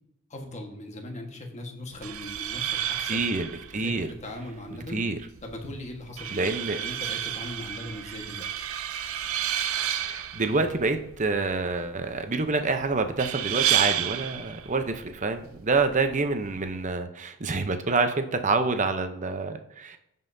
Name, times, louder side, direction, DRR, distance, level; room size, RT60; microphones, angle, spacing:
voice 1, 0.3-3.2 3.8-5.0 5.4-8.5, left 1 dB, 30° left, 2 dB, 1.4 m, -39 dB
sound 1, 1.9-16.9, right 10 dB, 65° right, 0.5 m, -32 dB
voice 2, 3.1-4.1 4.9-5.2 6.3-6.8 10.0-20.0, right 3 dB, 35° right, 7 dB, 0.7 m, -27 dB
15.5 x 5.5 x 2.7 m, 0.81 s
head